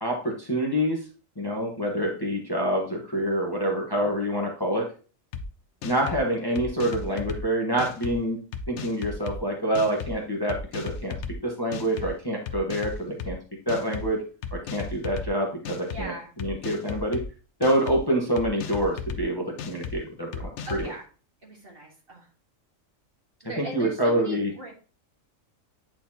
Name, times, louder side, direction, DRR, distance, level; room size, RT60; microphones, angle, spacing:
voice 1, 0.0-1.0 1.4-4.9 5.8-8.4 8.7-11.1 11.4-13.4 13.7-17.2 17.6-20.9 23.6-24.5, right 1 dB, 20° left, -1 dB, 1.2 m, -27 dB
sound 1, 5.3-5.4 5.8-6.2 6.6-7.4 7.8-8.1 8.5-9.4 9.7-10.1 10.5-11.3 11.7-12.1 12.5-13.3 13.7-14.1 14.4-15.3 15.6-16.0 16.4-17.2 17.6-18.0 18.4-19.2 19.6-19.9 20.3-20.9, left 5 dB, 65° left, 0.9 m, -35 dB
voice 2, 15.9-16.3 20.6-21.0 21.4-22.3 23.4-24.7, equal, 45° right, 0 dB, 1.7 m, -39 dB
9.0 x 4.2 x 2.8 m, 0.36 s
omnidirectional pair, 1.4 m